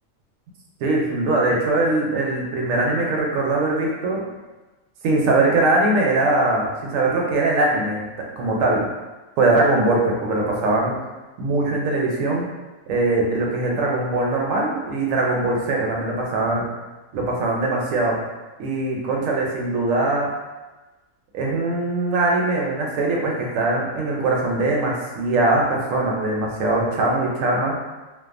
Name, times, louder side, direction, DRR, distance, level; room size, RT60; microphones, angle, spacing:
voice 1, 0.8-4.2 5.0-8.1 8.4-8.8 9.4-11.0 11.4-12.5 12.9-16.7 17.1-18.2 18.6-20.3 21.3-27.7, right 2 dB, 75° right, -1 dB, 0.9 m, -21 dB
2.4 x 2.3 x 2.4 m, 1.2 s
omnidirectional pair, 1.4 m